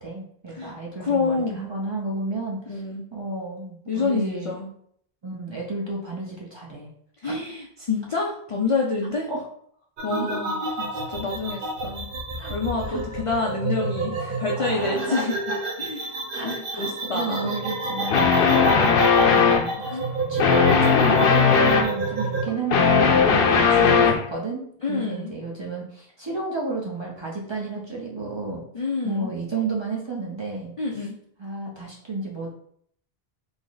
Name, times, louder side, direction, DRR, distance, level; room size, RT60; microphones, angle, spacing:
voice 1, 0.0-2.8 3.1-4.5 5.2-6.9 7.2-7.4 9.3-9.4 10.1-10.3 12.4-12.5 12.9-13.0 14.6-15.3 16.3-20.0 20.3-28.6 29.0-30.7 31.4-32.5, right 3 dB, 35° right, -3 dB, 0.5 m, -31 dB
voice 2, 1.0-1.7 2.7-3.1 3.9-4.7 7.2-9.3 10.0-12.1 12.5-17.5 18.6-18.7 19.8-20.1 23.5-24.1 24.8-25.3 28.7-29.3 30.8-31.2, left 4 dB, 55° left, -1 dB, 0.3 m, -28 dB
sound 1, 10.0-22.5, right 2 dB, 60° right, 0.9 m, -29 dB
sound 2, 18.1-19.7 20.4-21.9 22.5-24.3, left 6 dB, 70° left, 0.8 m, -18 dB
3.3 x 2.0 x 3.8 m, 0.66 s
omnidirectional pair, 1.0 m